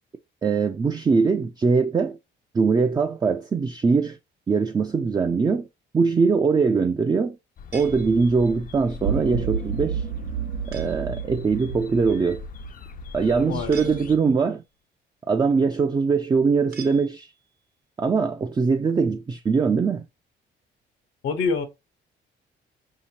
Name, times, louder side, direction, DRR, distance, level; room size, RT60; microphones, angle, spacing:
voice 1, 0.4-2.2 2.5-4.2 4.5-5.7 5.9-7.4 7.7-10.0 10.7-12.4 13.1-14.6 15.3-17.3 18.0-20.1, right 5 dB, 20° right, 0.3 m, -22 dB
sound 1, 7.6-14.2, left 6 dB, 45° left, 0.4 m, -41 dB
sound 2, 7.7-8.7 10.7-11.2 13.7-14.6 16.7-17.6, right 6 dB, 50° right, 0.8 m, -45 dB
sound 3, 9.0-13.3, right 7 dB, 90° right, 0.7 m, -31 dB
voice 2, 13.4-14.0 21.2-21.7, left 5 dB, 85° left, 0.9 m, -26 dB
4.9 x 2.8 x 2.9 m
cardioid pair, 90°, 20 cm